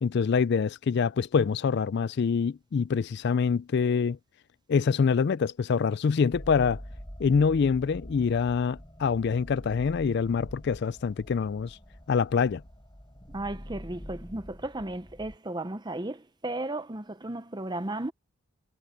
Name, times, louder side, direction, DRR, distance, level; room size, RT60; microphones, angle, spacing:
voice 1, 0.0-4.2 4.7-6.8 7.2-11.8 12.1-12.6, left 5 dB, 50° left, 0.3 m, -25 dB
sound 1, 6.3-15.4, equal, 20° left, 7.0 m, -45 dB
voice 2, 13.3-18.1, right 2 dB, 20° right, 0.7 m, -35 dB
head